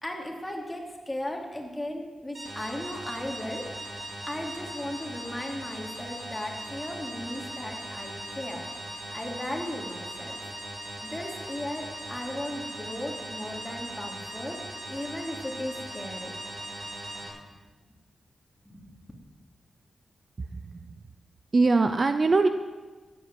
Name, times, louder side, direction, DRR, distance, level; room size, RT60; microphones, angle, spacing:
voice 1, 0.0-3.7 4.3-8.7 9.1-10.4 11.0-16.3 18.6-18.9, left 1 dB, 10° left, 0 dB, 3.1 m, -36 dB
sound 1, 2.3-17.3, right 1 dB, 60° right, 5.0 m, -39 dB
voice 2, 20.5-20.9 21.5-22.5, right 3 dB, 40° right, 9 dB, 0.8 m, -22 dB
14.0 x 10.0 x 7.8 m, 1.3 s
cardioid pair, 85°, 0 cm